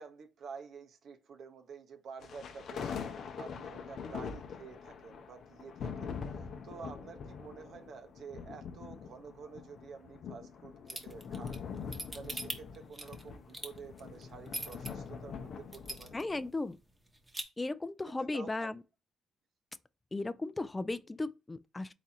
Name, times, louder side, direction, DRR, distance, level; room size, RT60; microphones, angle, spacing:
voice 1, 0.0-16.2 18.1-18.8, right 5 dB, 65° right, 0.6 m, -50 dB
sound 1, 2.2-16.5, left 6 dB, 65° left, 0.6 m, -44 dB
sound 2, 10.9-14.9 15.3-15.4 15.7-16.4 16.7-16.8 17.1-17.4, right 1 dB, 15° right, 0.9 m, -40 dB
voice 2, 16.1-16.8 17.6-18.8 20.1-21.9, left 2 dB, 20° left, 0.3 m, -36 dB
4.1 x 2.4 x 4.1 m
cardioid pair, 90°, 0 cm